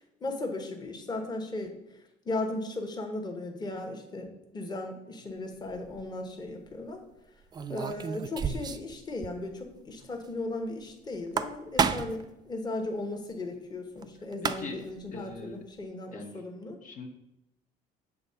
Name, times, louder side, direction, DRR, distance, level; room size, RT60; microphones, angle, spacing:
voice 1, 0.2-1.8 2.2-7.0 7.7-16.8, left 2 dB, 25° left, 4 dB, 1.0 m, -36 dB
sound 1, 5.7-6.0 7.5-8.9 9.2-9.3 9.6-9.7 11.1-12.3 14.0-14.1 14.3-14.9, right 5 dB, 25° right, 0.4 m, -30 dB
voice 2, 14.4-14.8 15.1-15.6 16.1-16.4 16.8-17.1, left 3 dB, 55° left, 2 dB, 0.9 m, -41 dB
6.9 x 3.5 x 5.5 m, 0.88 s
cardioid pair, 110°, 17 cm